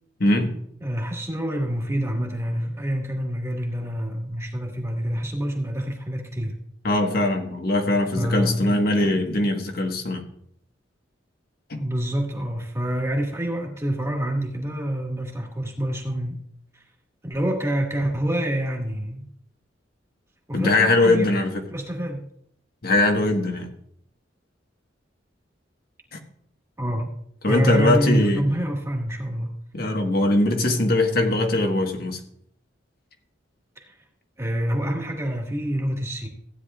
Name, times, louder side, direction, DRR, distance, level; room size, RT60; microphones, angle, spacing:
voice 1, 0.2-0.6 6.8-10.2 11.7-11.8 20.5-21.6 22.8-23.7 26.1-26.2 27.4-28.4 29.7-32.2, left 2 dB, 55° left, 4 dB, 1.5 m, -21 dB
voice 2, 0.8-6.5 8.2-8.6 11.8-16.4 16.7-16.8 17.2-19.3 20.5-21.3 21.7-22.2 26.8-27.1 27.5-29.5 33.8-34.0 34.4-36.3, right 1 dB, 15° right, 0 dB, 1.7 m, -27 dB
15.5 x 9.7 x 2.4 m, 0.68 s
head